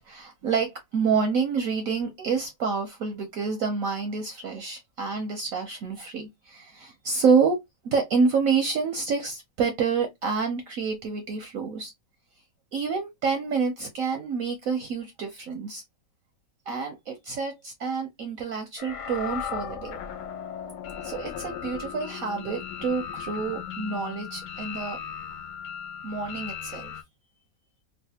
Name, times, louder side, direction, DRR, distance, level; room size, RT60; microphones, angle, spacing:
voice 1, 0.0-7.6 7.8-11.9 12.7-15.8 16.7-20.0 21.0-25.0 26.0-27.0, right 5 dB, 65° right, 0.8 m, -28 dB
sound 1, 18.8-27.0, left 8 dB, 75° left, 1.2 m, -37 dB
3.2 x 2.4 x 2.7 m
omnidirectional pair, 1.9 m